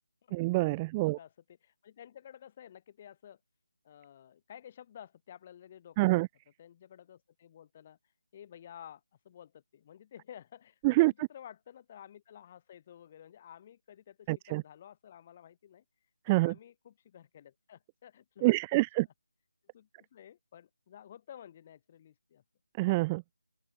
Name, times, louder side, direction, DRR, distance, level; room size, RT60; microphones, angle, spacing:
voice 1, 0.3-1.2 6.0-6.3 10.8-11.1 14.3-14.6 16.3-16.5 18.4-19.0 22.8-23.2, right 22 dB, 20° right, 0.5 m, -26 dB
voice 2, 1.0-3.4 3.8-6.2 6.6-8.0 8.3-15.8 16.3-18.8 19.7-22.4, left 10 dB, 30° left, 6.2 m, -52 dB
figure-of-eight pair, 155°, 0 cm